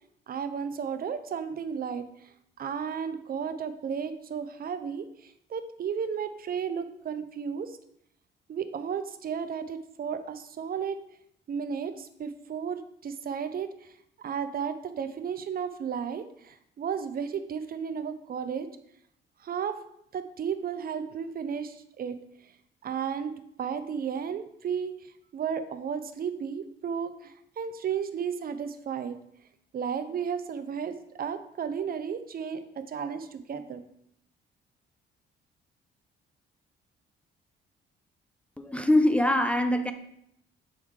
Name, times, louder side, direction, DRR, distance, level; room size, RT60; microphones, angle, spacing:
voice 1, 0.3-7.8 8.5-11.0 11.5-13.9 14.2-18.7 19.4-19.8 20.1-22.5 22.8-23.3 23.6-24.9 25.3-29.2 29.7-33.8, right 7 dB, 50° right, 10 dB, 0.5 m, -33 dB
voice 2, 38.6-39.9, left 1 dB, 5° left, 7 dB, 0.5 m, -23 dB
6.3 x 4.5 x 3.6 m, 0.73 s
cardioid pair, 90°, 20 cm